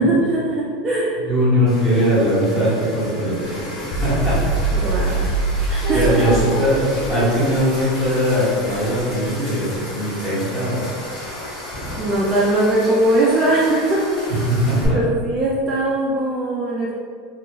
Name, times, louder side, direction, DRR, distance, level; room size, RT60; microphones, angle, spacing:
voice 1, 0.0-1.3 4.7-5.3 5.7-6.0 12.0-14.5 14.8-16.9, right 1 dB, 25° right, -5 dB, 0.4 m, -20 dB
voice 2, 1.3-4.4 5.0-5.3 5.9-6.8 7.1-10.9 14.5-15.0, equal, 10° left, -10 dB, 1.4 m, -20 dB
sound 1, 1.7-14.8, equal, 35° left, 1.2 m, -32 dB
sound 2, 3.9-8.1, right 3 dB, 55° left, 0.4 m, -23 dB
3.1 x 2.4 x 3.7 m, 2.2 s
supercardioid pair, 145°, 0 cm